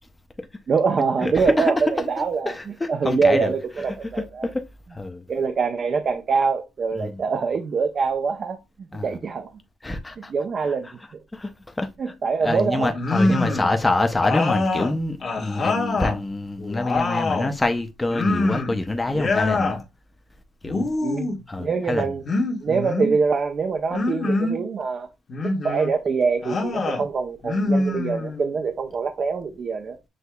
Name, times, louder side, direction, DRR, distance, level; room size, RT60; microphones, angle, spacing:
voice 1, 0.7-2.5 2.9-4.5 5.3-8.6 9.0-9.5 10.3-10.9 12.0-12.9 13.4-13.6 21.0-21.3 21.6-22.2 22.6-25.1 25.4-30.0, right 5 dB, 50° right, 0.5 m, -24 dB
voice 2, 1.2-1.7 2.2-4.6 4.9-5.2 7.0-7.2 8.9-9.2 9.8-10.3 10.6-10.9 11.3-12.1 12.4-19.8 20.6-21.2 21.5-22.2, left 2 dB, 15° left, 0.5 m, -26 dB
sound 1, 12.9-13.7 14.2-16.2 16.6-17.5 18.1-18.8 19.1-19.8 20.6-21.4 22.2-23.2 23.9-24.6 25.3-25.9 26.4-27.0 27.4-28.5, left 2 dB, 45° left, 1.1 m, -25 dB
6.3 x 2.7 x 2.2 m
cardioid pair, 90°, 0 cm